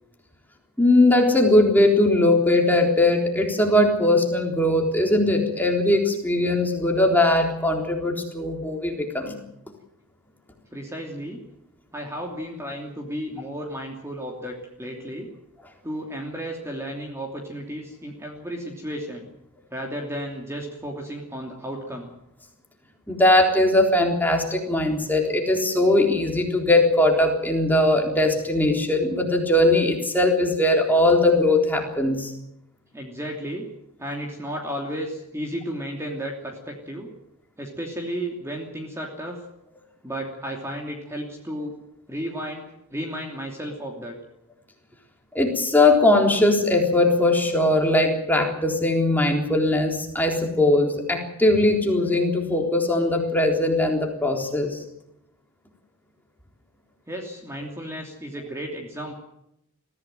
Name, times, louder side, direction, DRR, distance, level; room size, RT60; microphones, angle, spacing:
voice 1, 0.8-9.4 23.1-32.3 45.3-54.8, left 1 dB, 10° left, 1 dB, 3.8 m, -20 dB
voice 2, 10.7-11.4 11.9-15.3 15.8-19.3 19.7-22.1 32.9-33.7 34.0-37.1 37.6-39.4 40.0-41.7 42.1-42.6 42.9-44.1 57.1-59.2, equal, 10° right, 0 dB, 2.9 m, -33 dB
22.5 x 15.5 x 9.1 m, 0.82 s
head